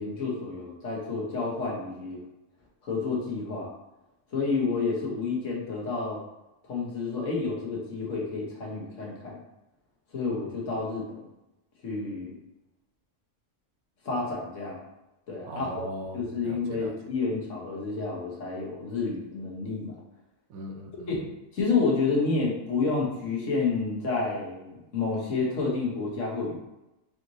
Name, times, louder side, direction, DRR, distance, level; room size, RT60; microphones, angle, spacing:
voice 1, 0.0-2.2 2.8-3.7 4.3-6.2 6.6-9.4 10.1-11.3 11.8-12.4 14.0-14.8 15.3-15.7 16.1-19.9 21.2-26.6, left 4 dB, 60° left, -4 dB, 1.4 m, -30 dB
voice 2, 15.5-17.0 20.5-21.1, right 1 dB, 80° right, 3 dB, 1.1 m, -39 dB
5.0 x 3.1 x 2.6 m, 0.95 s
omnidirectional pair, 1.5 m